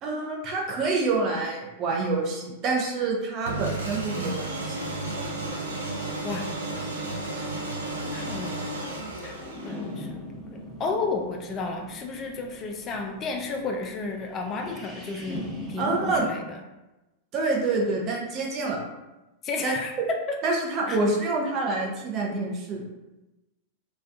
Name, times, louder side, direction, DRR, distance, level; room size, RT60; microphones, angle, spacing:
voice 1, 0.0-4.8 15.8-16.2 17.3-18.8 19.6-19.7 20.4-22.8, right 3 dB, 40° right, -1 dB, 0.6 m, -27 dB
sound 1, 3.5-10.0, right 2 dB, 85° right, 0.5 m, -33 dB
voice 2, 8.0-8.5 9.2-9.3 9.6-10.2 10.8-16.6 19.4-19.9 20.3-20.4 20.9-21.0, left 4 dB, 35° left, 2 dB, 0.3 m, -32 dB
sound 2, 9.3-16.2, left 1 dB, ahead, 0.9 m, -40 dB
2.5 x 2.3 x 2.2 m, 1.0 s
hypercardioid pair, 95°, 0 cm